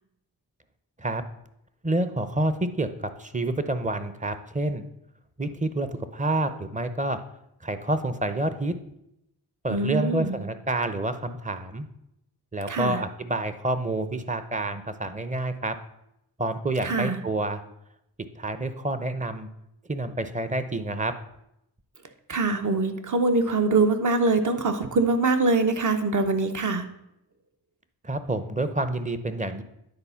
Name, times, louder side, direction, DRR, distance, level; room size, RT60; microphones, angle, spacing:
voice 1, 1.8-4.8 5.4-5.9 6.1-7.2 7.6-8.7 9.6-11.9 12.5-15.7 16.4-17.6 18.4-19.5 19.9-21.1 28.0-29.6, right 2 dB, 20° right, 11 dB, 0.7 m, -28 dB
voice 2, 9.7-10.4 12.7-13.0 16.8-17.2 22.3-26.8, right 3 dB, 45° right, 8 dB, 0.9 m, -23 dB
9.7 x 4.1 x 5.7 m, 0.81 s
cardioid pair, 70°, 41 cm